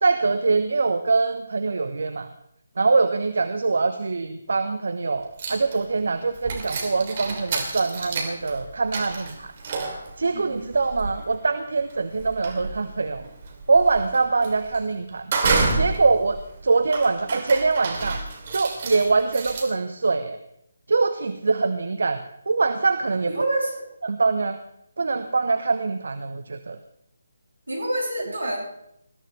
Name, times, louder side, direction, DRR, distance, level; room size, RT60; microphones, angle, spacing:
voice 1, 0.0-2.3 2.8-9.5 10.2-13.2 13.7-15.3 15.7-18.2 18.5-20.4 20.9-22.2 22.5-23.3 24.0-24.6 25.0-26.8, right 4 dB, 55° right, 9 dB, 0.9 m, -23 dB
sound 1, 5.4-6.0 6.3-19.6, right 3 dB, 35° right, 3.0 m, -30 dB
voice 2, 23.3-23.8 27.7-28.6, right 1 dB, 75° right, -2 dB, 7.2 m, -27 dB
21.0 x 14.0 x 3.3 m, 0.77 s
figure-of-eight pair, 145°, 0 cm